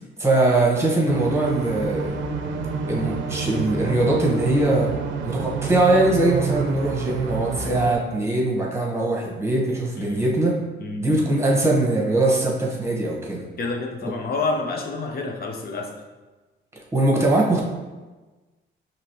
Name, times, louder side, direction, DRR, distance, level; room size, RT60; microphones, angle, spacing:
voice 1, 0.2-2.2 2.9-5.0 5.2-10.5 11.0-13.4 16.9-17.6, right 2 dB, 15° right, -2 dB, 1.2 m, -21 dB
sound 1, 1.1-7.9, right 5 dB, 70° right, 0.5 m, -28 dB
voice 2, 10.8-11.1 13.6-16.0, left 3 dB, 50° left, 2 dB, 0.8 m, -28 dB
5.0 x 2.9 x 3.0 m, 1.2 s
cardioid pair, 90°, 20 cm